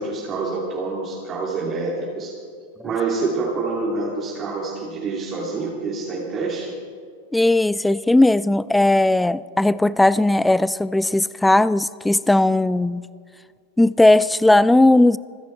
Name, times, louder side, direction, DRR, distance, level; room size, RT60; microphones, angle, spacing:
voice 1, 0.0-2.3 2.8-6.7, right 3 dB, 25° right, 2.5 m, -26 dB
voice 2, 7.3-13.0 13.8-15.2, left 2 dB, 5° left, 0.3 m, -17 dB
26.5 x 10.5 x 4.4 m
figure-of-eight pair, 90°, 0 cm